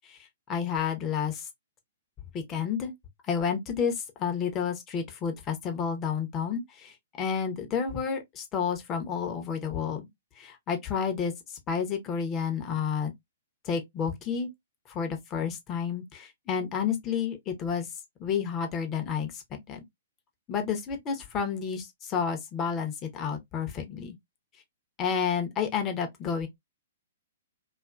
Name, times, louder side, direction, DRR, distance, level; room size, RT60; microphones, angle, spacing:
voice 1, 0.5-1.4 2.3-2.9 3.3-3.9 4.2-10.1 10.4-11.3 11.7-13.1 13.7-14.5 14.9-17.9 18.2-19.8 20.5-24.1 25.0-26.5, left 7 dB, 25° left, 0.8 m, -30 dB
2.5 x 2.5 x 2.2 m
figure-of-eight pair, 120°, 0 cm